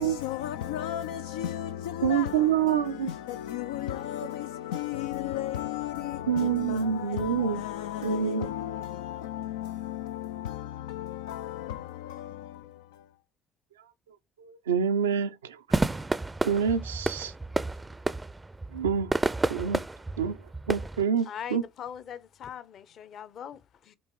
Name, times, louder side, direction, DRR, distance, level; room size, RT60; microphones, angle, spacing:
voice 1, 0.0-13.2, left 12 dB, 70° left, 0.3 m, -35 dB
voice 2, 2.0-3.1 6.3-7.6 8.0-8.5 14.4-15.6 16.4-17.3 18.7-19.1 19.5-19.8 20.2-20.4 20.7-21.6, right 8 dB, 75° right, 0.6 m, -27 dB
sound 1, 15.7-21.0, right 2 dB, 15° right, 0.5 m, -30 dB
voice 3, 21.2-24.0, left 9 dB, 50° left, 0.8 m, -41 dB
8.4 x 3.6 x 4.6 m
figure-of-eight pair, 50°, 0 cm